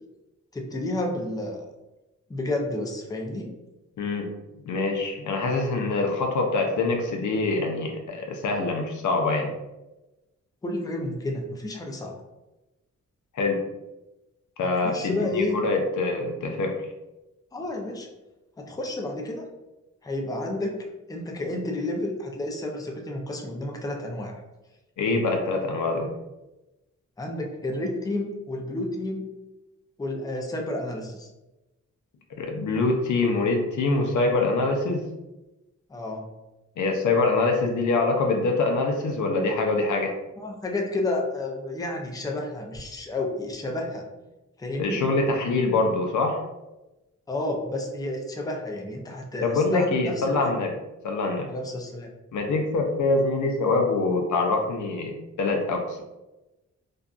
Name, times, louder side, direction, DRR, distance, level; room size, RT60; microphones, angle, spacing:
voice 1, 0.5-1.7 2.3-3.5 10.6-12.2 14.6-15.6 17.5-18.1 18.6-19.4 20.0-24.4 27.2-29.3 30.0-31.3 35.9-36.3 40.4-44.1 44.6-45.1 47.3-50.5 51.5-52.1, left 1 dB, 10° left, 1 dB, 0.5 m, -31 dB
voice 2, 4.0-4.3 4.7-9.5 13.3-13.6 14.6-16.7 25.0-26.1 32.4-35.0 36.8-40.1 44.8-46.4 49.4-50.7 51.0-51.5 52.3-56.0, left 3 dB, 70° left, 2 dB, 0.5 m, -24 dB
2.6 x 2.2 x 2.4 m, 1.0 s
cardioid pair, 60°, 31 cm